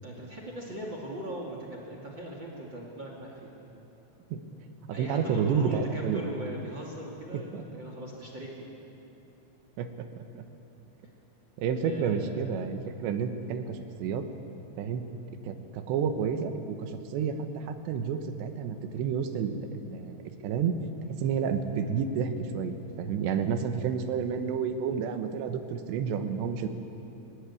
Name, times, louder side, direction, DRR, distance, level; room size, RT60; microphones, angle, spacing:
voice 1, 0.0-3.7 4.9-8.7 11.8-12.5, right 1 dB, 30° right, -1 dB, 2.5 m, -40 dB
voice 2, 4.9-6.2 7.3-7.6 9.8-10.4 11.6-14.2 14.8-15.0 15.4-20.2 20.4-20.7 21.2-26.7, right 6 dB, 80° right, 6 dB, 3.4 m, -30 dB
21.5 x 21.0 x 8.6 m, 2.9 s
omnidirectional pair, 5.0 m